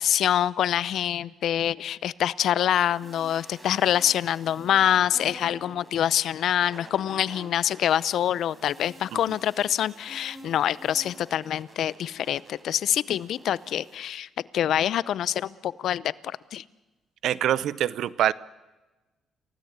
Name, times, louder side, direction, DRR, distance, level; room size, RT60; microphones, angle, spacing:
voice 1, 0.0-14.3 14.5-16.6, left 10 dB, 70° left, 20 dB, 0.7 m, -25 dB
sound 1, 2.7-14.0, right 1 dB, 20° right, 5.1 m, -48 dB
voice 2, 17.2-18.3, right 11 dB, 75° right, 20 dB, 0.7 m, -24 dB
29.0 x 17.0 x 8.2 m, 1.1 s
cardioid pair, 90°, 0 cm